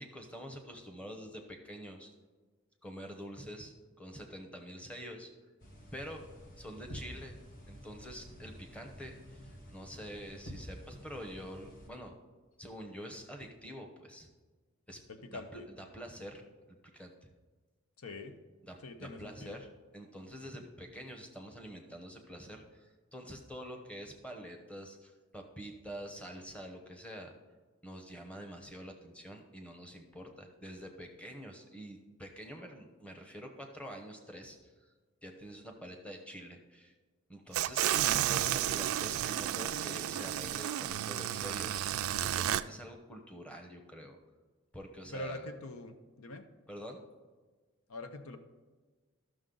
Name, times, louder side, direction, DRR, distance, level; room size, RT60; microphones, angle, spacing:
voice 1, 0.0-2.1 2.8-5.3 5.9-6.2 6.6-7.3 7.7-12.1 12.6-14.3 14.9-15.0 15.3-17.3 18.6-19.7 19.9-27.3 27.8-34.7 35.2-36.9 37.3-44.2 44.7-45.4 46.7-47.0, equal, 5° left, 3 dB, 0.9 m, -47 dB
sound 1, 5.6-11.9, equal, 40° left, 1.2 m, -50 dB
voice 2, 15.1-15.7 18.0-18.3 18.8-19.6 45.1-46.5 47.9-48.4, left 2 dB, 85° left, 8 dB, 0.7 m, -44 dB
sound 2, 37.5-42.6, right 11 dB, 75° right, 0.3 m, -32 dB
12.5 x 6.4 x 3.9 m, 1.4 s
head